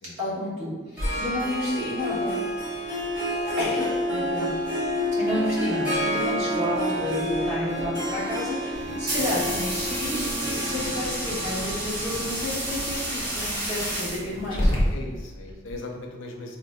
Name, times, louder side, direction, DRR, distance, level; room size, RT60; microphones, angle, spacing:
voice 1, 0.2-2.4 2.8-3.0 3.6-4.7 5.2-14.7, left 1 dB, 80° right, -9 dB, 1.4 m, -31 dB
Growling, 1.0-15.8, equal, 25° left, 0.6 m, -35 dB
Harp, 1.0-14.5, equal, 5° right, 1.1 m, -29 dB
sound 1, 8.7-14.7, right 1 dB, 50° right, 0.9 m, -31 dB
voice 2, 14.9-16.6, left 2 dB, 90° left, 2 dB, 0.5 m, -39 dB
3.8 x 2.6 x 2.2 m, 1.4 s
head